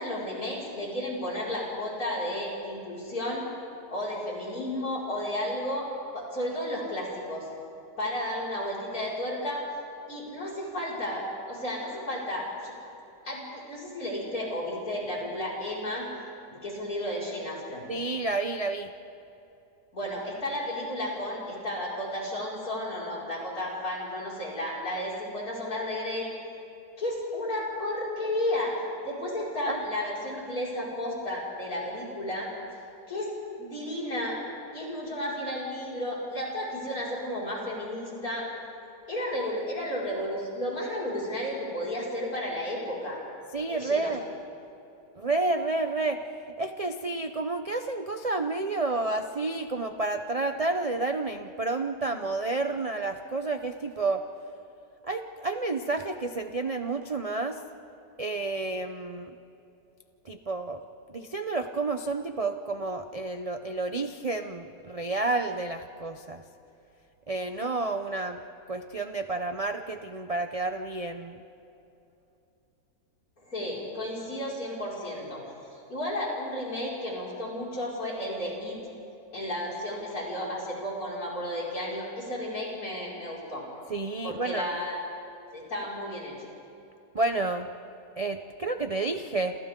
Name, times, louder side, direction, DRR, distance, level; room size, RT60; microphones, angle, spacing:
voice 1, 0.0-3.5 3.9-7.5 8.0-9.6 10.1-12.7 13.2-16.1 16.5-17.9 19.9-26.3 27.0-28.7 29.0-32.5 33.1-33.3 33.6-34.4 34.7-38.5 39.1-43.2 43.7-44.1 73.4-75.4 75.7-78.8 79.3-83.6 84.2-85.0 85.5-86.3, left 1 dB, 55° left, -5 dB, 6.1 m, -33 dB
voice 2, 17.9-18.9 29.7-29.8 43.5-44.2 45.2-46.2 46.6-54.2 55.0-57.6 58.2-59.3 60.2-60.8 61.1-66.4 67.3-68.4 68.7-71.4 83.9-84.7 87.1-87.7 88.2-89.6, right 3 dB, 50° right, 7 dB, 0.4 m, -30 dB
28.5 x 27.5 x 3.8 m, 2.9 s
omnidirectional pair, 1.8 m